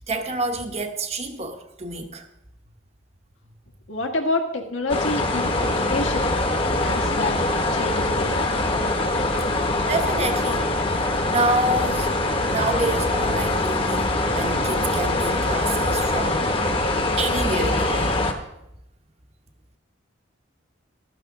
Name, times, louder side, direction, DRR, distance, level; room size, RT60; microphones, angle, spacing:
voice 1, 0.1-2.3 9.8-12.2 12.5-16.5 17.2-18.2, right 2 dB, 30° right, 0.9 m, -28 dB
voice 2, 3.9-6.3 6.7-7.4 7.7-8.5, left 2 dB, 75° left, 1.7 m, -28 dB
sound 1, 4.9-18.3, left 2 dB, 25° left, 1.0 m, -23 dB
14.5 x 12.0 x 3.7 m
head